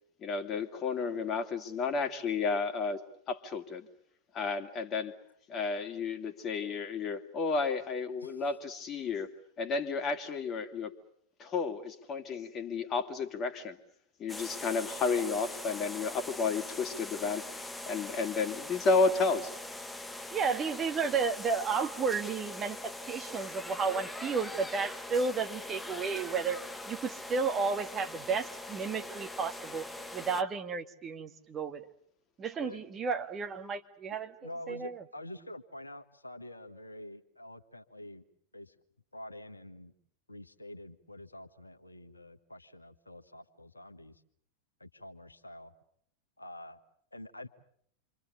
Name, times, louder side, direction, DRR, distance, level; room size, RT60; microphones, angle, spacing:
voice 1, 0.2-3.9 4.3-5.1 5.5-9.3 9.6-10.9 11.4-13.8 14.2-19.5, left 4 dB, 30° left, 8 dB, 2.4 m, -32 dB
sound 1, 14.3-30.4, left 1 dB, 5° left, 1.1 m, -42 dB
voice 2, 20.3-29.8 30.1-31.8 32.4-34.3 34.7-35.0, right 5 dB, 25° right, 6 dB, 1.8 m, -33 dB
voice 3, 34.1-38.2 38.5-38.7 39.1-39.9 40.3-44.2 44.8-45.7 46.4-46.8 47.1-47.5, left 1 dB, 80° left, 6 dB, 1.5 m, -47 dB
28.0 x 25.0 x 6.8 m, 0.68 s
figure-of-eight pair, 90°, 0 cm